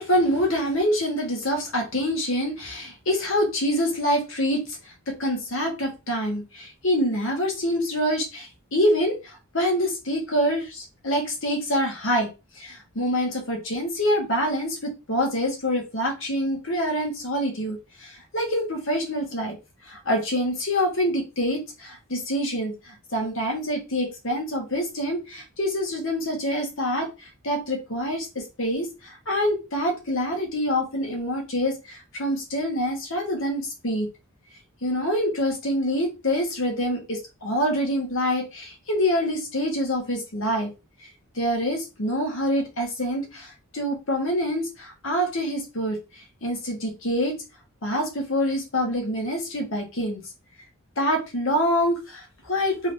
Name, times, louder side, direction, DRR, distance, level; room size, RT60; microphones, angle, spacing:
voice 1, 0.0-4.6 5.1-12.3 12.6-19.6 19.8-34.1 34.8-40.7 41.3-46.0 46.4-47.4 47.8-50.2 51.0-52.9, equal, 65° left, 1 dB, 1.4 m, -26 dB
3.6 x 2.7 x 3.4 m, 0.27 s
head